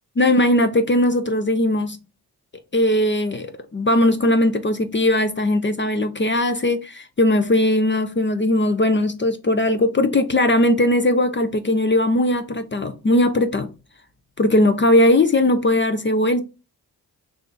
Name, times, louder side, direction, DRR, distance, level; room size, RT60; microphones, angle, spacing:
voice 1, 0.2-2.0 2.7-13.7 14.4-16.4, left 1 dB, 30° left, 0.6 m, -19 dB
3.1 x 2.7 x 3.7 m
supercardioid pair, 45°, 40 cm